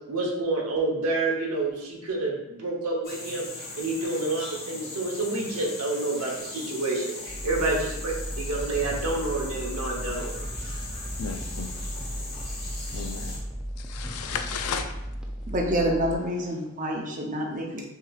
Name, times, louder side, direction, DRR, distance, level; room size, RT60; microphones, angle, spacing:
voice 1, 0.1-8.1 8.4-10.4, right 2 dB, 90° right, -2 dB, 1.0 m, -28 dB
sound 1, 3.0-13.4, left 2 dB, 45° left, 1.4 m, -39 dB
sound 2, 7.3-16.2, equal, 5° right, 0.3 m, -35 dB
voice 2, 11.2-11.7 12.9-13.4 13.8-14.9, left 6 dB, 90° left, 7 dB, 0.4 m, -33 dB
voice 3, 15.5-17.8, equal, 35° right, 0 dB, 0.6 m, -27 dB
5.8 x 2.9 x 2.4 m, 0.94 s
head